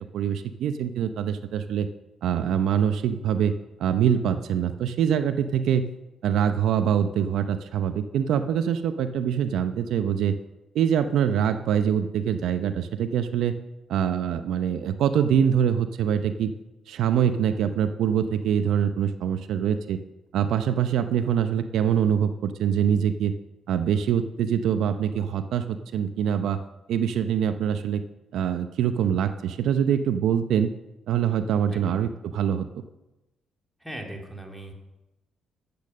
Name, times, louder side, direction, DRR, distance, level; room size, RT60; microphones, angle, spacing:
voice 1, 0.1-1.9 2.2-3.5 3.8-5.9 6.2-10.3 10.7-13.5 13.9-16.5 16.9-20.0 20.3-23.3 23.7-26.6 26.9-28.0 28.3-30.7 31.1-32.7, right 8 dB, 80° right, 10 dB, 0.7 m, -24 dB
voice 2, 31.7-32.1 33.8-34.7, right 1 dB, ahead, 1 dB, 2.6 m, -39 dB
12.0 x 8.7 x 6.5 m, 1.0 s
cardioid pair, 90°, 0 cm